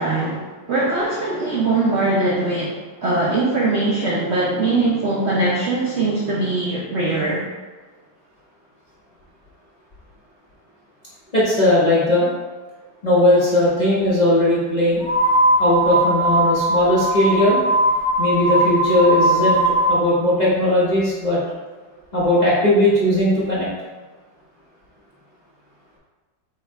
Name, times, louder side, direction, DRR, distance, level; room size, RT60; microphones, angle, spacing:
voice 1, 0.0-7.4, right 2 dB, 65° right, -4 dB, 0.6 m, -21 dB
voice 2, 11.3-12.3 13.0-15.0 15.6-17.6 18.2-21.4 22.1-23.7, left 1 dB, 35° left, -9 dB, 0.8 m, -18 dB
sound 1, 15.0-20.0, right 1 dB, 10° left, 1.3 m, -19 dB
3.6 x 3.1 x 4.5 m, 1.3 s
omnidirectional pair, 1.9 m